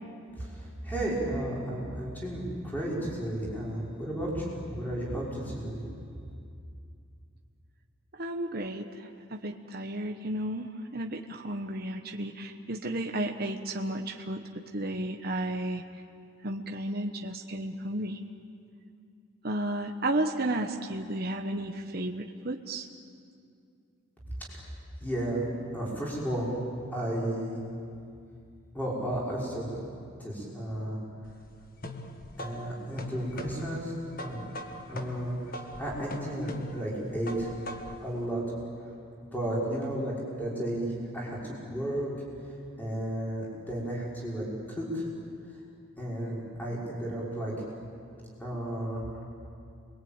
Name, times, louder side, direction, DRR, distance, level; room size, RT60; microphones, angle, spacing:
voice 1, 0.4-5.8 24.5-24.6 25.0-26.6 26.9-27.6 28.7-29.8 30.2-31.0 32.4-34.4 34.9-37.5 38.0-38.4 39.3-42.1 42.8-45.1 46.0-47.5 48.4-49.0, right 1 dB, 10° left, -5 dB, 5.9 m, -33 dB
voice 2, 8.2-8.8 9.3-14.4 14.7-15.8 16.4-18.2 19.4-22.9, right 1 dB, 45° right, 3 dB, 1.2 m, -33 dB
sound 1, 31.2-38.1, left 1 dB, 40° left, 1.5 m, -41 dB
29.0 x 22.0 x 9.0 m, 2.4 s
head